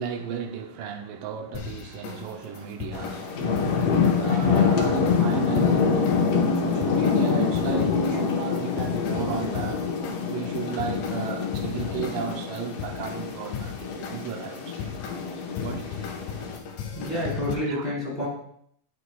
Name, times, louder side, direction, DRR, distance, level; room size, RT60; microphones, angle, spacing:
voice 1, 0.0-9.9 10.3-14.9 15.6-16.1 17.7-17.9, right 7 dB, 85° right, 2.4 m, -34 dB
sound 1, 1.5-17.6, left 7 dB, 85° left, 2.5 m, -37 dB
sound 2, 2.9-16.6, left 5 dB, 65° left, 1.6 m, -25 dB
voice 2, 16.9-18.3, equal, 15° left, 3.1 m, -29 dB
11.5 x 7.3 x 2.3 m
omnidirectional pair, 3.8 m